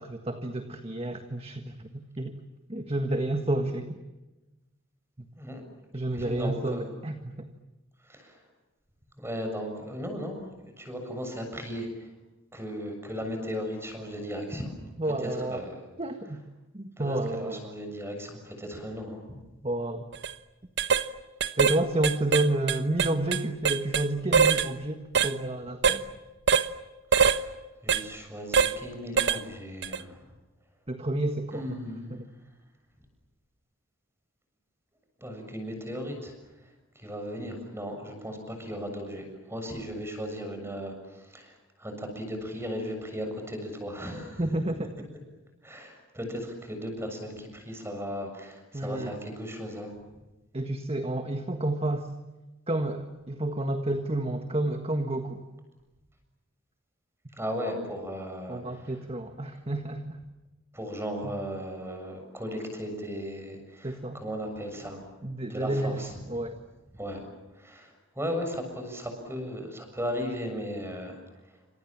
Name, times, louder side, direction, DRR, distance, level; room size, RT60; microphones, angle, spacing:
voice 1, 0.0-2.4 2.7-4.0 5.9-7.5 15.0-15.6 16.0-16.4 16.7-17.6 19.6-20.1 21.6-26.0 30.9-31.8 32.1-32.3 44.4-45.1 48.7-49.1 50.5-52.1 52.7-55.4 58.5-60.2 61.2-61.3 63.8-64.2 65.2-66.6, right 1 dB, 30° right, 6 dB, 1.6 m, -30 dB
voice 2, 6.1-6.9 8.0-8.4 9.2-10.4 10.8-12.1 12.5-14.7 15.2-15.8 17.0-19.2 27.2-27.6 27.8-30.2 31.5-32.2 35.2-36.3 37.0-44.6 45.6-49.9 57.4-58.9 60.7-65.0 65.5-66.2 66.9-67.3 67.5-71.2, equal, 10° right, 5 dB, 7.1 m, -36 dB
sound 1, 20.1-20.3 20.8-21.1 21.4-21.8 22.0-24.1 24.3-24.7 25.1-25.3 25.8-26.0 26.5-26.7 27.1-27.4 27.9-28.0 28.5-28.7 29.2-29.4 29.8-30.0, right 6 dB, 55° right, 1.1 m, -23 dB
29.0 x 26.5 x 7.4 m, 1.1 s
head